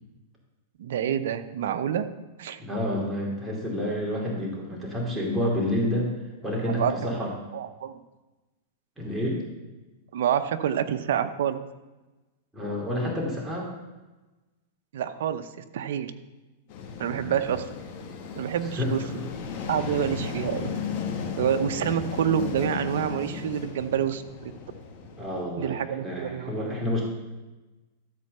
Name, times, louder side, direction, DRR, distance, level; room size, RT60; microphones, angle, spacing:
voice 1, 0.8-2.0 2.4-2.6 6.7-6.9 7.5-7.9 10.1-11.6 14.9-16.1 17.0-17.7 18.4-19.0 19.7-20.7 21.4-24.5 25.6-26.8, right 9 dB, 75° right, 10 dB, 0.8 m, -27 dB
voice 2, 2.6-6.1 6.4-7.3 9.0-9.4 12.5-13.7 17.1-17.5 18.8-19.2 25.2-27.0, left 1 dB, 5° right, -3 dB, 2.7 m, -29 dB
sound 1, 16.7-25.4, left 5 dB, 50° left, 2.0 m, -35 dB
13.0 x 4.6 x 6.7 m, 1.1 s
supercardioid pair, 140°, 0 cm